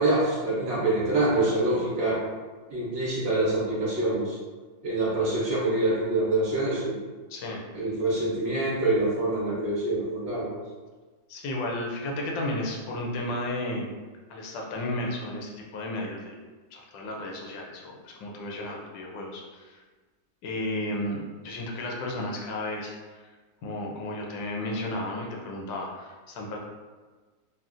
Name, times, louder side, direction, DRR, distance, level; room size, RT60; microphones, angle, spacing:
voice 1, 0.0-2.2 2.7-4.4 4.8-7.0 7.7-10.5, right 2 dB, 65° right, -6 dB, 0.7 m, -25 dB
voice 2, 7.3-7.6 11.3-13.9 14.3-19.8 20.4-23.2 23.6-26.6, left 1 dB, 85° left, -1 dB, 1.3 m, -33 dB
3.8 x 2.1 x 2.4 m, 1.4 s
omnidirectional pair, 2.0 m